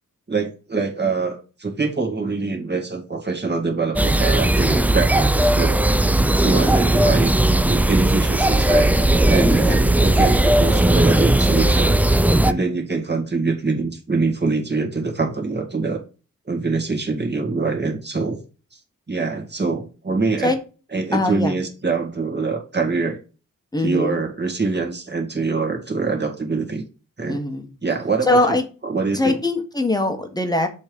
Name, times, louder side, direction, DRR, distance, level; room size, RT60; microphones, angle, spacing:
voice 1, 0.3-5.7 6.4-8.9 9.3-11.9 12.5-16.0 16.5-18.4 19.1-20.5 20.9-23.2 23.8-26.8 27.2-27.4 27.8-28.6 28.8-29.4, right 4 dB, 30° right, 1 dB, 1.8 m, -24 dB
sound 1, 4.0-12.5, right 1 dB, 5° right, 0.3 m, -17 dB
voice 2, 9.4-9.8 12.4-12.7 20.4-20.6 21.1-21.5 23.7-24.2 27.3-27.7 28.3-28.6 29.1-30.7, left 2 dB, 10° left, 5 dB, 1.1 m, -22 dB
7.2 x 3.2 x 5.2 m, 0.34 s
wide cardioid pair, 85°, 33 cm